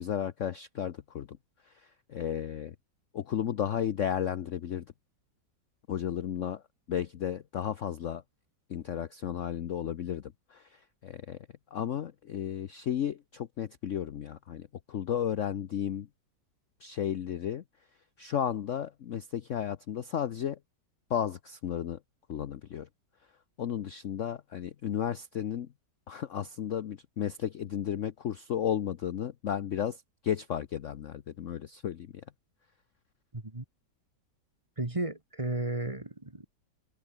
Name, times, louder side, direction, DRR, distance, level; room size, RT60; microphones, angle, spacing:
voice 1, 0.0-1.4 1.6-2.7 3.1-4.9 5.9-6.6 6.9-8.2 8.7-11.4 11.7-16.1 16.8-17.6 18.2-20.6 21.1-22.0 22.3-22.9 23.6-25.7 26.1-32.2, left 9 dB, 55° left, 0.9 m, -33 dB
voice 2, 33.3-33.6 34.8-36.5, right 2 dB, 20° right, 2.0 m, -34 dB
open air
omnidirectional pair, 1.9 m